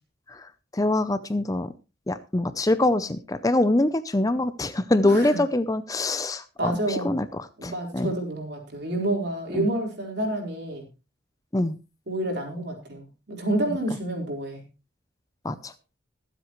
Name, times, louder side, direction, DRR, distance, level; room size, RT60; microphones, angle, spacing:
voice 1, 0.7-1.7 2.1-8.1 9.5-9.7 11.5-11.8 15.4-15.7, left 2 dB, 20° left, 13 dB, 0.5 m, -24 dB
voice 2, 6.6-7.2 7.6-10.8 12.1-14.6, right 1 dB, 55° right, 1 dB, 4.2 m, -29 dB
22.5 x 7.9 x 3.1 m, 0.29 s
head